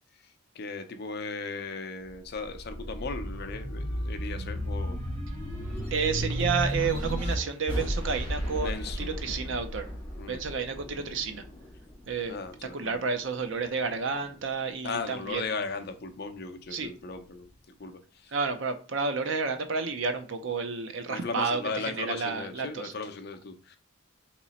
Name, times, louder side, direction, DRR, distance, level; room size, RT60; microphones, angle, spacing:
voice 1, 0.2-5.0 8.6-9.2 10.2-10.4 12.3-13.1 14.8-17.5 17.8-18.3 21.1-23.8, left 4 dB, 50° left, 0.5 m, -37 dB
sound 1, 2.1-12.9 13.4-14.5, equal, 5° left, 1.7 m, -34 dB
voice 2, 5.9-9.9 10.3-11.4 12.1-12.4 12.7-15.4 16.7-16.9 18.3-22.9, right 5 dB, 65° right, 0.6 m, -31 dB
3.0 x 2.9 x 4.1 m
head